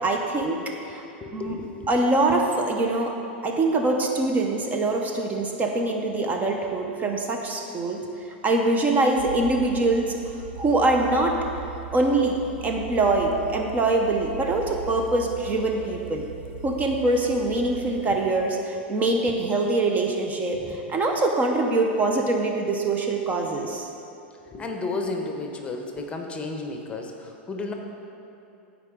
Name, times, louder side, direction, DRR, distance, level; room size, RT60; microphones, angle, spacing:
voice 1, 0.0-1.0 1.3-1.6 1.9-3.2 3.4-8.0 8.4-10.2 10.6-11.4 11.9-16.3 16.6-23.9, right 2 dB, 25° right, 2 dB, 0.8 m, -24 dB
voice 2, 1.2-1.9 20.5-20.8 24.5-27.7, left 3 dB, 20° left, 3 dB, 1.0 m, -33 dB
sound 1, 9.2-18.3, right 6 dB, 70° right, 0.8 m, -39 dB
14.5 x 4.8 x 3.8 m, 2.8 s
hypercardioid pair, 110°, 6 cm